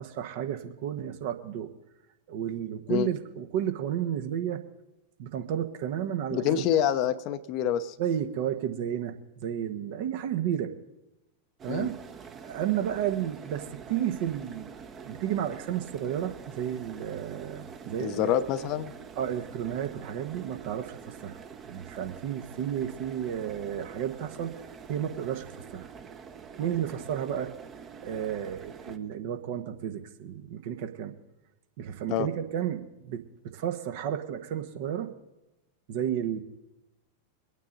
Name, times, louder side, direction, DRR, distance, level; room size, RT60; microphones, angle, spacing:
voice 1, 0.0-1.7 2.3-4.6 5.2-6.7 8.0-10.7 11.6-11.9 12.4-14.7 15.0-18.3 19.2-21.4 21.7-24.5 24.9-25.9 26.5-27.5 28.0-31.1 31.8-35.1 35.9-36.4, right 10 dB, 50° right, 6 dB, 1.3 m, -32 dB
voice 2, 6.3-8.0 11.7-11.9 18.0-18.9 32.1-32.3, left 10 dB, 40° left, 12 dB, 0.8 m, -26 dB
sound 1, 11.6-29.0, right 6 dB, 25° right, 1.1 m, -46 dB
23.5 x 9.1 x 3.9 m, 0.97 s
figure-of-eight pair, 90°, 0 cm